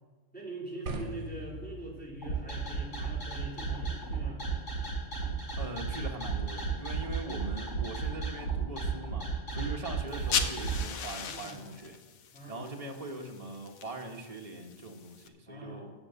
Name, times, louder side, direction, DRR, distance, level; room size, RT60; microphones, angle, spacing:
voice 1, 0.3-4.4 9.5-9.7 11.2-11.7 12.3-12.7 15.5-15.9, right 1 dB, 5° left, -6 dB, 3.8 m, -43 dB
sound 1, 0.9-7.0, right 2 dB, 55° right, 1.5 m, -46 dB
sound 2, 2.2-10.8, right 4 dB, 60° left, 3.8 m, -34 dB
voice 2, 5.6-12.0 12.5-15.9, right 2 dB, 25° right, 2 dB, 1.3 m, -41 dB
sound 3, 10.1-15.3, left 7 dB, 80° left, 1.3 m, -38 dB
16.0 x 5.5 x 6.9 m, 1.4 s
omnidirectional pair, 1.5 m